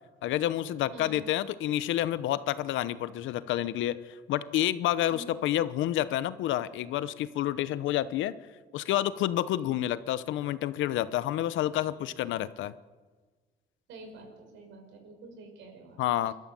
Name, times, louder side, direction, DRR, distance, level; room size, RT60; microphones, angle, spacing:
voice 1, 0.2-8.3 8.7-12.7 16.0-16.3, left 13 dB, 80° left, 15 dB, 1.0 m, -29 dB
voice 2, 13.9-16.0, right 2 dB, 70° right, 4 dB, 5.8 m, -48 dB
28.5 x 13.0 x 7.8 m, 1.4 s
cardioid pair, 160°, 20 cm